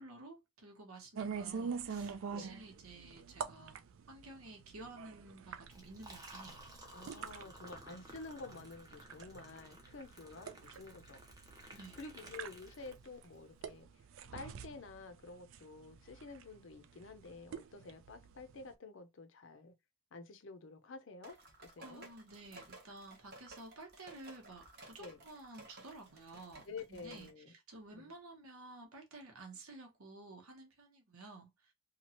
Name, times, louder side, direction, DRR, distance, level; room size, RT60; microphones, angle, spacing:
voice 1, 0.0-3.8 4.1-6.6 11.7-12.0 21.8-31.5, right 2 dB, 85° right, 1.1 m, -53 dB
sound 1, 1.2-18.7, right 6 dB, 65° right, 0.3 m, -46 dB
Liquid, 5.7-13.3, right 1 dB, 15° right, 0.6 m, -55 dB
voice 2, 6.9-11.2 11.6-13.9 14.3-19.7 20.1-22.1 25.0-25.2 26.7-27.5 27.9-28.1, left 3 dB, 60° left, 0.5 m, -50 dB
sound 2, 21.2-27.3, right 2 dB, 45° right, 0.8 m, -56 dB
2.9 x 2.3 x 2.8 m
head